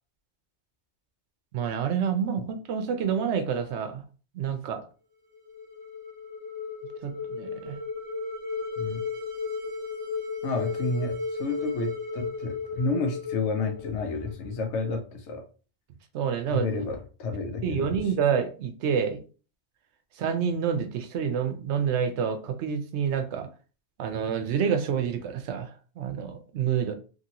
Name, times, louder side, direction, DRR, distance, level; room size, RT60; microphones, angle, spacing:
voice 1, 1.5-4.0 4.3-4.8 7.0-7.8 16.1-16.7 17.6-19.2 20.2-23.5 24.0-26.9, right 7 dB, 85° right, 0.9 m, -28 dB
sound 1, 5.3-14.5, left 4 dB, 60° right, 1.2 m, -35 dB
voice 2, 10.4-15.5 16.5-18.0, left 3 dB, 85° left, 1.0 m, -30 dB
2.9 x 2.7 x 2.7 m
omnidirectional pair, 1.1 m